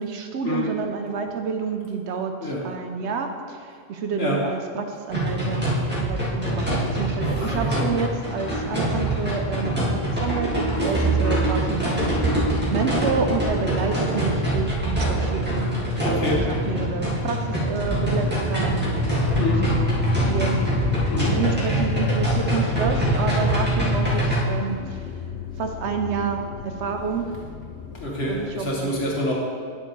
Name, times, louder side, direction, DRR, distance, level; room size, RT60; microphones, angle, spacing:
voice 1, 0.0-5.7 6.0-20.6 21.3-25.1 25.6-27.4 28.3-28.9, right 5 dB, 80° right, 5 dB, 1.0 m, -29 dB
sound 1, 5.1-24.4, right 1 dB, 10° right, 1.9 m, -24 dB
voice 2, 7.3-7.9 11.2-11.5 16.0-16.5 19.4-19.7 21.1-21.4 27.9-29.3, left 1 dB, 65° left, -3 dB, 1.8 m, -27 dB
sound 2, 16.2-28.8, left 6 dB, 80° left, 0.9 m, -35 dB
9.4 x 7.7 x 3.2 m, 2.2 s
omnidirectional pair, 1.1 m